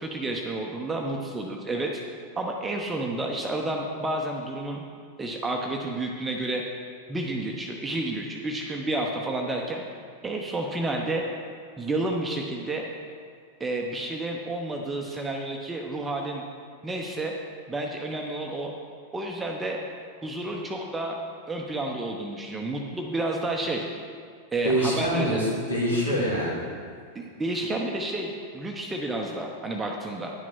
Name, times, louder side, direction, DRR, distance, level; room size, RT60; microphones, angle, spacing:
voice 1, 0.0-2.0 2.4-4.8 5.2-6.6 7.1-9.8 10.2-11.3 11.8-12.9 13.6-16.4 16.8-17.3 17.7-18.7 19.1-19.8 20.2-21.2 21.5-23.9 24.5-25.4 26.1-26.2 27.1-30.3, right 2 dB, 15° right, 1 dB, 0.8 m, -30 dB
voice 2, 24.6-26.7, equal, 75° left, -5 dB, 2.8 m, -25 dB
9.8 x 6.1 x 6.1 m, 2.1 s
figure-of-eight pair, 90°, 0 cm